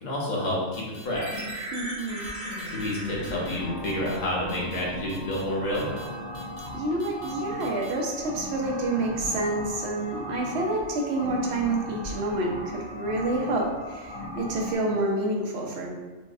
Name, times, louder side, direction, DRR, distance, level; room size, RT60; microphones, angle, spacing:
voice 1, 0.0-1.5 2.7-5.9, left 1 dB, 40° left, -4 dB, 0.8 m, -29 dB
sound 1, 0.7-1.1 1.3-1.7 2.0-2.3 2.6-2.9 3.2-3.6 3.8-4.2 4.5-4.8 5.1-5.4 5.7-6.1 6.3-6.7 7.0-7.3 7.6-7.9, left 2 dB, 60° left, 0.4 m, -48 dB
sound 2, 1.1-14.8, equal, 85° right, 1.8 m, -38 dB
sound 3, 1.3-6.6 6.9-14.7, left 2 dB, 80° left, 1.0 m, -43 dB
voice 2, 1.7-2.5 6.7-15.9, right 2 dB, 65° right, 0 dB, 0.7 m, -28 dB
4.5 x 2.1 x 2.6 m, 1.2 s
omnidirectional pair, 1.3 m